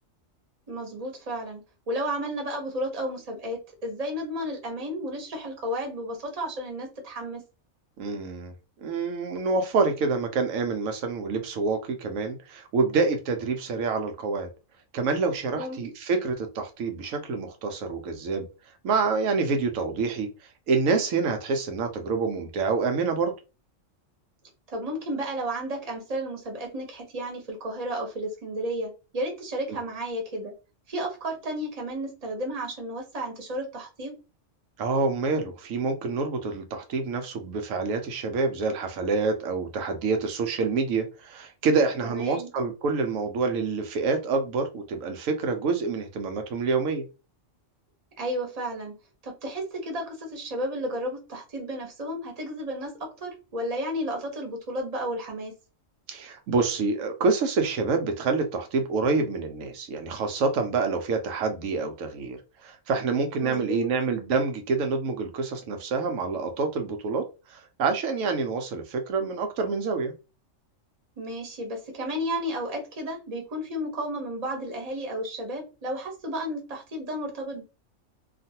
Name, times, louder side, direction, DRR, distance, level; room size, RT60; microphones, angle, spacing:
voice 1, 0.7-1.6 1.9-7.4 15.5-15.8 24.7-30.5 30.9-34.2 42.0-42.5 48.2-48.9 49.2-55.5 63.4-63.9 71.2-77.6, equal, 35° right, 0.9 m, -32 dB
voice 2, 8.0-8.5 8.8-14.5 14.9-18.5 18.8-20.3 20.7-23.3 29.7-29.8 34.8-47.1 56.1-70.1, right 4 dB, 85° right, 1.0 m, -27 dB
2.5 x 2.4 x 2.7 m
omnidirectional pair, 1.3 m